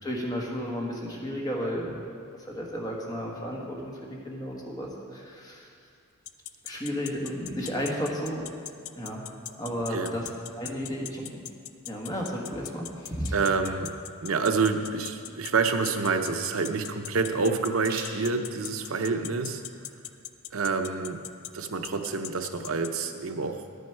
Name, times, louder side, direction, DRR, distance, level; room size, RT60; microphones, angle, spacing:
voice 1, 0.0-2.0 2.5-5.7 6.6-8.5 9.0-9.3 9.6-10.3 10.6-11.3 11.9-13.3, equal, 20° left, -2 dB, 1.4 m, -33 dB
sound 1, 6.3-22.9, left 13 dB, 80° left, 0.4 m, -38 dB
voice 2, 13.3-13.9 14.2-19.6 20.5-21.2 21.5-23.6, right 4 dB, 75° right, 6 dB, 0.7 m, -27 dB
sound 2, 17.5-21.3, right 5 dB, 45° right, 1.1 m, -49 dB
10.5 x 9.4 x 4.5 m, 2.4 s
head